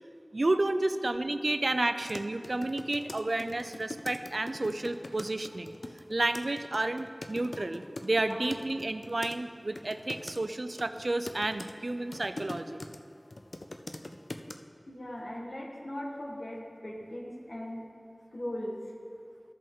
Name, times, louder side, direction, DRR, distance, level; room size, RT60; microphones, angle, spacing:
voice 1, 0.3-5.8 6.1-12.8, right 2 dB, 70° right, 10 dB, 0.4 m, -31 dB
sound 1, 2.0-9.4 9.8-10.4 10.8-13.0 13.3-14.5, left 2 dB, 85° left, 0.4 m, -42 dB
voice 2, 14.9-17.9 18.3-18.9, left 1 dB, 70° left, -2 dB, 1.2 m, -39 dB
14.5 x 5.4 x 3.6 m, 2.4 s
wide cardioid pair, 40°, 0 cm